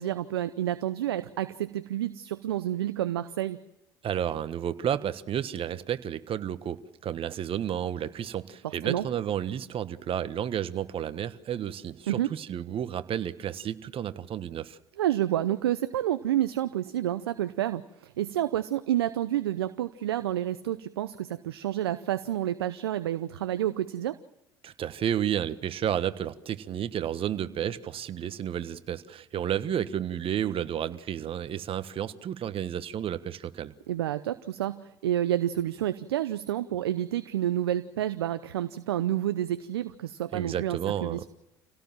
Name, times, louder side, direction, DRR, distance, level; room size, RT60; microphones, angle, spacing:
voice 1, 0.0-3.6 8.6-9.0 12.1-12.3 15.0-24.2 33.9-41.3, right 12 dB, 85° right, 12 dB, 0.7 m, -29 dB
voice 2, 4.0-14.8 24.6-33.7 40.3-41.3, right 10 dB, 45° right, 12 dB, 1.4 m, -31 dB
27.5 x 17.5 x 7.5 m, 0.91 s
hypercardioid pair, 70°, 13 cm